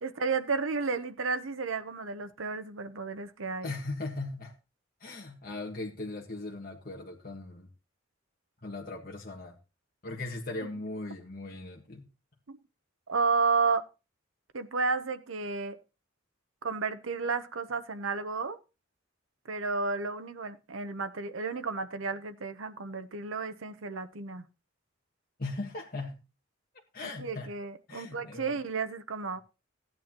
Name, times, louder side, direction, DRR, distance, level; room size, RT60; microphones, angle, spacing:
voice 1, 0.0-3.7 12.5-12.6 13.1-13.9 14.5-15.8 16.6-18.6 19.5-24.4 27.2-29.4, right 4 dB, 85° right, 9 dB, 0.9 m, -32 dB
voice 2, 3.6-4.5 5.0-7.7 8.6-9.5 10.0-12.1 25.4-26.2 26.9-27.5 27.9-28.6, left 2 dB, 50° left, -1 dB, 1.6 m, -38 dB
16.0 x 9.2 x 3.0 m, 0.30 s
head